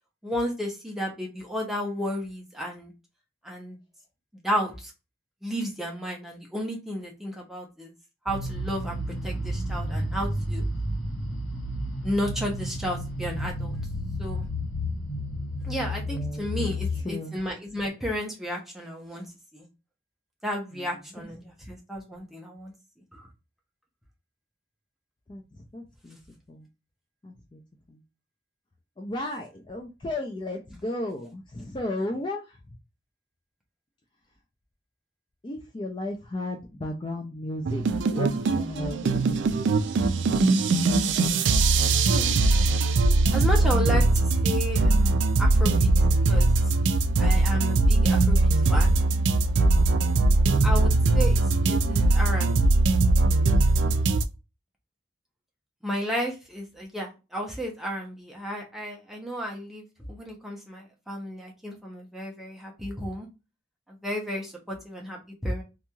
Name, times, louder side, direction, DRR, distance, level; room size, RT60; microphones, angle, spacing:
voice 1, 0.2-2.9 3.4-3.8 4.4-4.9 5.4-7.9 8.2-10.6 12.0-13.8 14.2-14.5 15.6-19.3 19.5-19.6 20.4-22.7 23.1-23.3 42.1-42.4 43.3-45.9 46.3-46.5 47.2-49.0 50.6-52.7 55.8-63.3 63.9-65.6, equal, ahead, -1 dB, 0.7 m, -33 dB
sound 1, 8.3-17.0, equal, 70° left, 1.8 m, -31 dB
voice 2, 16.0-16.5 17.0-17.3 20.7-20.9 21.2-21.3 25.3-25.4 25.7-26.2 26.5-26.7 27.2-27.6 27.9-28.0 29.0-32.6 35.4-39.5, left 1 dB, 25° left, 1 dB, 0.4 m, -34 dB
sound 2, 37.7-54.2, right 2 dB, 75° right, 0.3 m, -21 dB
3.0 x 2.6 x 2.3 m, 0.27 s
head